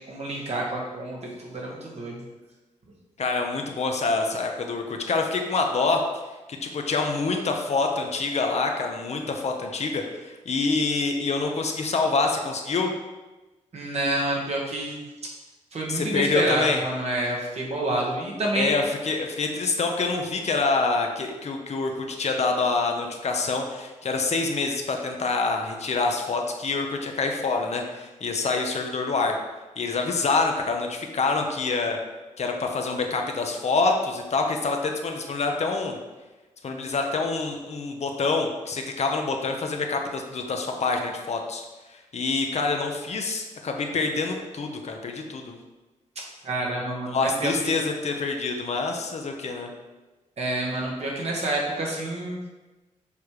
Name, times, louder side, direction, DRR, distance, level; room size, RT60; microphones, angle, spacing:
voice 1, 0.1-2.2 13.7-15.0 15.7-18.7 46.4-47.8 50.4-52.4, right 1 dB, 55° right, -2 dB, 1.8 m, -28 dB
voice 2, 3.2-6.0 6.6-12.9 15.9-16.8 18.5-29.4 29.8-32.0 32.4-36.0 36.6-41.6 41.9-45.6 47.1-49.7, left 3 dB, 55° left, 3 dB, 0.9 m, -26 dB
6.8 x 3.5 x 4.8 m, 1.2 s
cardioid pair, 75°, 13 cm